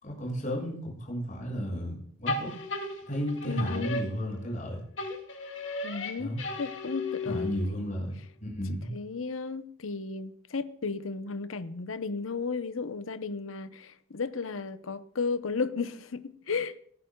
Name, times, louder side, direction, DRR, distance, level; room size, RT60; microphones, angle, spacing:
voice 1, 0.0-2.5 3.1-4.8 6.2-6.4 7.3-8.9, equal, 40° left, 6.9 m, -33 dB
sound 1, 2.3-4.6 5.0-7.8, left 3 dB, 65° left, 2.5 m, -35 dB
voice 2, 3.5-4.0 5.8-7.9 8.9-16.8, left 4 dB, 85° left, 0.8 m, -34 dB
19.0 x 14.0 x 2.3 m
head